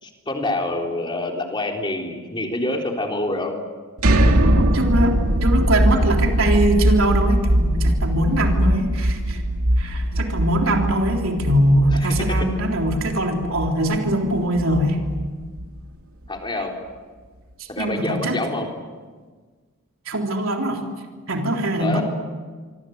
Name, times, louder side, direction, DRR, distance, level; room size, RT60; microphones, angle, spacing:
voice 1, 0.0-3.5 11.9-12.0 16.3-16.7 17.7-18.7 21.8-22.0, left 2 dB, 20° left, 1 dB, 3.9 m, -26 dB
sound 1, 4.0-15.8, right 1 dB, 85° right, 2.6 m, -21 dB
voice 2, 4.4-5.2 5.4-9.4 9.8-15.0 17.8-18.4 20.1-20.8 21.3-22.0, right 1 dB, 65° right, 2 dB, 3.6 m, -22 dB
26.0 x 26.0 x 8.1 m, 1.5 s
head